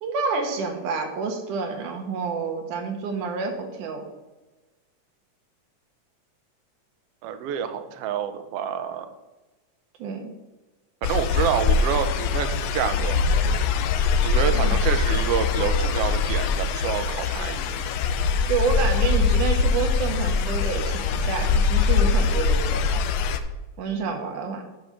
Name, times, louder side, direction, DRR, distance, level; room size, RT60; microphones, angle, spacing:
voice 1, 0.0-4.0 10.0-10.3 14.5-14.8 18.5-22.8 23.8-24.6, right 5 dB, 90° right, 4 dB, 2.8 m, -28 dB
voice 2, 7.2-9.1 11.0-13.2 14.2-17.7, right 8 dB, 70° right, 9 dB, 1.5 m, -28 dB
sound 1, 11.0-23.4, left 4 dB, 80° left, 1.6 m, -23 dB
sound 2, 11.3-12.0 12.2-15.8, right 3 dB, 45° right, 1.0 m, -44 dB
7.8 x 5.4 x 7.0 m, 1.2 s
omnidirectional pair, 3.5 m